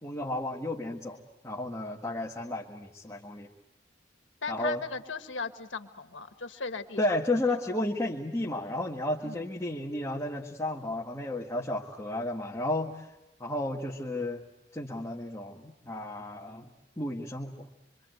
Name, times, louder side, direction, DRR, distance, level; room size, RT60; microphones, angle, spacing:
voice 1, 0.0-3.5 4.5-4.8 7.0-13.1 13.4-14.4 14.7-16.7 17.0-17.7, left 1 dB, 15° left, -3 dB, 1.7 m, -33 dB
voice 2, 4.4-7.0 9.2-9.4, left 4 dB, 80° left, 8 dB, 1.6 m, -37 dB
26.0 x 25.0 x 8.0 m, 0.93 s
head